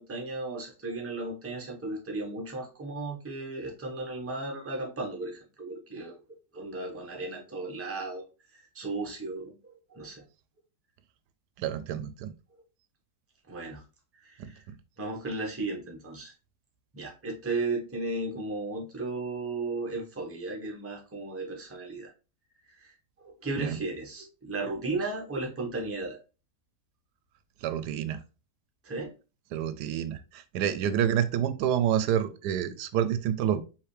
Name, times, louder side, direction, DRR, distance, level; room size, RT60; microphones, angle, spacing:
voice 1, 0.0-6.2 6.5-10.3 13.5-13.8 14.1-14.6 15.0-16.3 16.9-22.1 22.6-26.2 28.8-29.1, right 2 dB, 10° right, 0 dB, 0.8 m, -35 dB
voice 2, 11.6-12.3 14.4-14.8 23.6-23.8 27.6-28.2 29.5-33.6, right 9 dB, 90° right, 12 dB, 1.2 m, -28 dB
4.9 x 3.0 x 3.2 m, 0.31 s
omnidirectional pair, 1.7 m